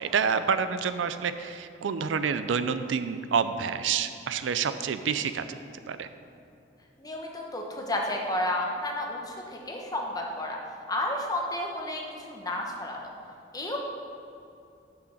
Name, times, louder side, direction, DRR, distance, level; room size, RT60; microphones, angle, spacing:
voice 1, 0.0-5.6 5.9-6.1, right 6 dB, 75° right, 11 dB, 0.4 m, -28 dB
voice 2, 7.0-10.6 10.9-12.0 12.3-13.1 13.5-13.8, left 1 dB, 20° left, 0 dB, 1.0 m, -31 dB
6.3 x 5.8 x 7.1 m, 2.6 s
head